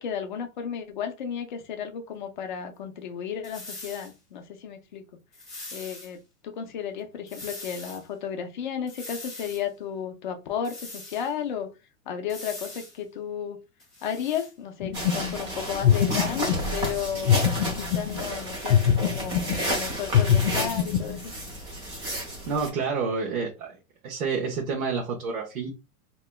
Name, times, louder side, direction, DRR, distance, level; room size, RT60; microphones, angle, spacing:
voice 1, 0.0-5.0 5.7-11.7 12.1-13.6 14.0-21.3, left 8 dB, 35° left, 0.4 m, -33 dB
sound 1, 3.4-4.1 5.3-6.1 7.3-8.0 8.9-9.6 10.6-11.3 12.3-13.0 13.8-14.5, left 2 dB, ahead, 0.9 m, -41 dB
sound 2, 14.8-15.4 15.8-16.8 17.3-18.3 18.7-19.7 20.1-21.2, left 9 dB, 80° left, 0.6 m, -24 dB
sound 3, 14.9-22.7, right 1 dB, 20° right, 0.6 m, -32 dB
voice 2, 22.5-23.8 24.0-25.7, right 5 dB, 90° right, 1.1 m, -29 dB
3.2 x 2.9 x 2.2 m
supercardioid pair, 175°, 41 cm